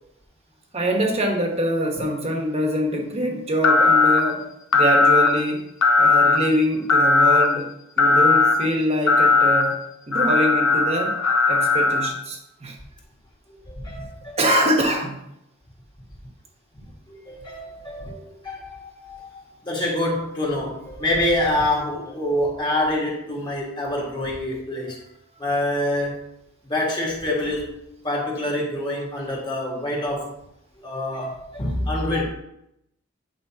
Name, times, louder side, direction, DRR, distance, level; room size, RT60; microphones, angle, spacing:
voice 1, 0.7-4.4 4.7-5.6 6.0-7.7 8.0-9.8 10.1-11.2 11.5-12.8 14.4-15.2, equal, 30° right, 1 dB, 1.3 m, -24 dB
sound 1, 3.6-4.2 4.7-5.3 5.8-6.4 6.9-7.5 8.0-8.5 9.1-9.6 10.1-12.1, left 3 dB, 75° left, 0.8 m, -17 dB
voice 2, 13.5-14.4 17.1-25.0 25.4-26.2 26.6-27.6 28.0-30.3 30.8-32.2, left 1 dB, 25° left, -2 dB, 1.7 m, -26 dB
9.0 x 5.1 x 2.8 m, 0.80 s
head